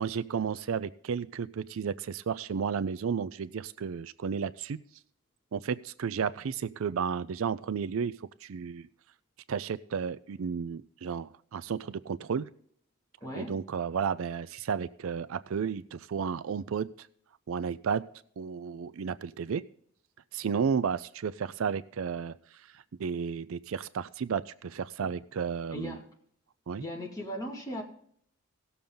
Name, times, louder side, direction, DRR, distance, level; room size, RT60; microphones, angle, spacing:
voice 1, 0.0-4.8 5.5-8.1 8.4-8.9 9.5-12.5 13.4-17.1 17.5-18.0 18.4-19.6 20.3-22.4 22.7-26.0 26.7-26.9, right 6 dB, 65° right, 0.4 m, -32 dB
voice 2, 13.2-13.6 25.0-25.1 25.7-26.0 26.8-27.8, equal, 15° left, 2.1 m, -38 dB
17.5 x 7.0 x 3.8 m
head